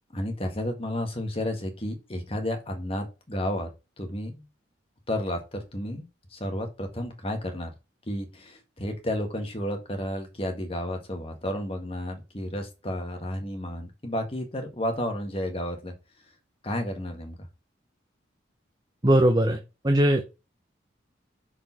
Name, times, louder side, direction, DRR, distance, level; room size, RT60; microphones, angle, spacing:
voice 1, 0.1-3.7 4.0-4.4 5.1-7.7 8.1-15.9 16.6-17.4, left 1 dB, 30° left, 4 dB, 1.8 m, -32 dB
voice 2, 19.0-19.6 19.8-20.2, right 1 dB, 20° right, 5 dB, 0.8 m, -19 dB
6.1 x 5.1 x 5.9 m, 0.28 s
head